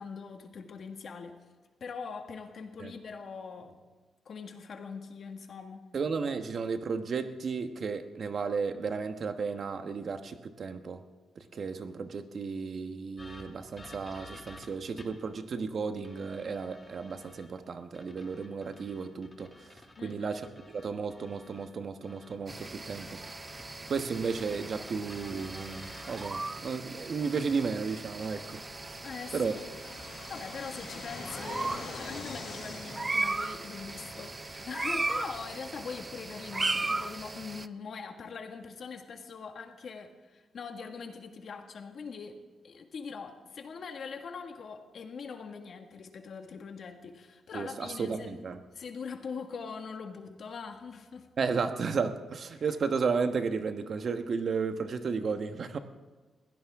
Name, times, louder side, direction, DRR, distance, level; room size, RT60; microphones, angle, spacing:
voice 1, 0.0-1.4 1.8-3.8 4.2-5.8 20.0-20.3 29.0-29.6 30.3-48.4 48.7-51.3 52.5-52.6, left 5 dB, 55° left, 5 dB, 1.7 m, -42 dB
voice 2, 5.9-11.0 11.4-23.2 23.9-28.6 28.9-29.0 29.3-29.6 47.5-48.6 51.4-55.8, right 5 dB, 50° right, 8 dB, 1.1 m, -33 dB
sound 1, 13.2-15.3 16.0-17.5 17.9-21.7 22.0-26.3, left 2 dB, 20° left, 2.2 m, -52 dB
sound 2, 22.5-37.7, right 3 dB, 20° right, 0.5 m, -37 dB
Fixed-wing aircraft airplane, 26.1-35.4, left 4 dB, 75° left, 5.4 m, -47 dB
21.5 x 17.0 x 3.6 m, 1.3 s
cardioid pair, 125°, 0 cm